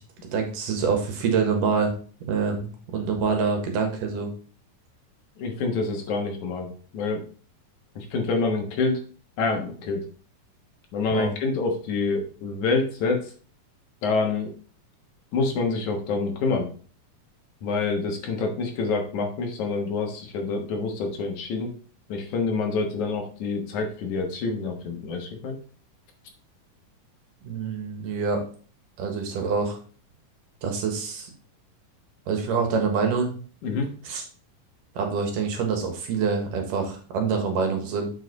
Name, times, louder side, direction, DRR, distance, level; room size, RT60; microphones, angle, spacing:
voice 1, 0.3-1.9 2.3-2.7 2.9-4.3 11.1-11.3 27.4-28.4 29.0-29.8 30.6-31.3 32.3-33.3 34.1-34.2 34.9-38.2, right 5 dB, 85° right, 3 dB, 3.1 m, -26 dB
voice 2, 5.4-7.2 8.0-9.0 9.4-10.0 10.9-13.2 14.0-14.5 15.3-16.7 17.6-21.7 22.1-25.6 33.6-33.9, left 4 dB, 70° left, 3 dB, 2.7 m, -27 dB
7.4 x 4.9 x 4.0 m, 0.41 s
omnidirectional pair, 3.7 m